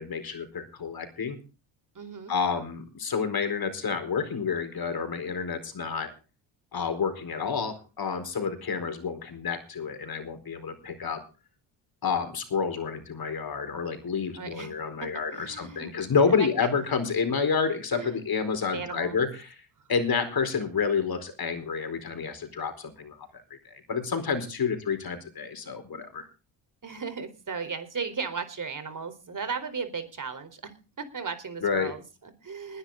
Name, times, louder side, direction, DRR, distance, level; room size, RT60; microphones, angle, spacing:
voice 1, 0.0-1.4 2.3-6.1 6.7-11.2 12.0-19.6 19.9-26.3 31.6-31.9, left 5 dB, 45° left, 9 dB, 4.5 m, -29 dB
voice 2, 1.9-2.3 14.4-14.7 15.0-16.0 16.3-16.7 18.0-18.3 18.7-19.2 26.8-30.7 31.0-32.8, right 5 dB, 40° right, 11 dB, 4.2 m, -36 dB
20.0 x 11.0 x 3.9 m, 0.32 s
supercardioid pair, 60°, 49 cm